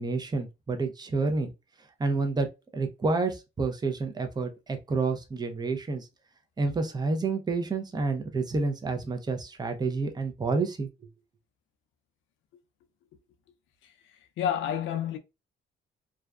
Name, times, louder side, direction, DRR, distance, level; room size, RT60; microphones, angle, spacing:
voice 1, 0.0-1.5 2.0-2.5 2.7-6.1 6.6-10.9, right 3 dB, 20° right, 0.5 m, -29 dB
voice 2, 13.8-15.2, left 9 dB, 75° left, 0.4 m, -31 dB
2.4 x 2.2 x 2.3 m
cardioid pair, 90°, 20 cm